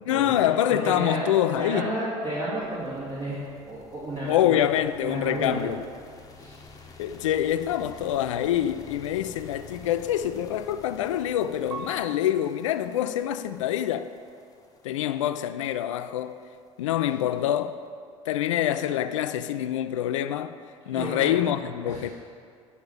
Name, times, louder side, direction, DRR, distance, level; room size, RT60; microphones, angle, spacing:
voice 1, 0.0-1.9 4.3-5.8 7.0-14.1 14.8-16.4 16.8-17.8 18.3-20.6 20.9-22.1, left 11 dB, 70° left, 0.4 m, -26 dB
voice 2, 0.7-1.2 1.5-3.4 3.7-4.7 5.0-5.6 6.3-6.6 20.9-21.4 21.8-22.1, right 1 dB, 40° right, 2.5 m, -32 dB
sound 1, 2.6-17.7, left 4 dB, 20° left, 1.0 m, -50 dB
Piano, 11.7-14.5 15.1-15.8, right 5 dB, 80° right, 0.6 m, -45 dB
9.6 x 4.3 x 7.2 m
figure-of-eight pair, 60°, 17 cm